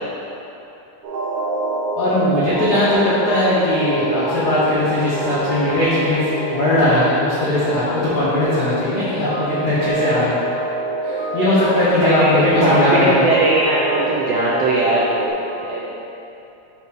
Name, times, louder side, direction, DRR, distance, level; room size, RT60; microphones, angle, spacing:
sound 1, 1.0-15.3, right 2 dB, 60° right, 1.8 m, -25 dB
voice 1, 1.9-6.2 6.5-10.4 11.0-13.2, left 1 dB, 85° left, -10 dB, 0.9 m, -19 dB
voice 2, 12.0-12.3 12.6-15.3 15.6-15.9, right 2 dB, 75° right, -5 dB, 1.4 m, -19 dB
7.1 x 3.7 x 5.9 m, 2.9 s
omnidirectional pair, 3.5 m